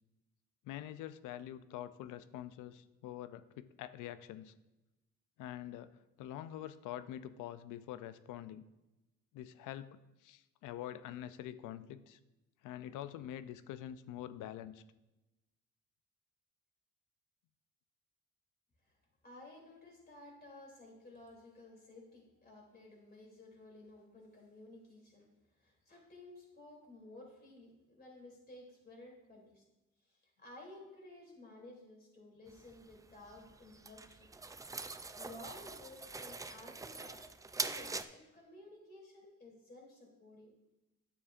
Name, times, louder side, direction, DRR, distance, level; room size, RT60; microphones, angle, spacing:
voice 1, 0.6-4.5 5.4-8.6 9.3-12.2 12.6-14.8, left 11 dB, 90° left, 14 dB, 0.5 m, -46 dB
voice 2, 19.2-25.3 25.5-29.6 30.0-34.3 35.2-37.2 37.6-40.5, left 2 dB, 30° left, -1 dB, 3.0 m, -55 dB
sound 1, 32.5-38.0, right 3 dB, 10° right, 0.3 m, -44 dB
9.9 x 7.2 x 2.5 m, 1.0 s
cardioid pair, 90°, 30 cm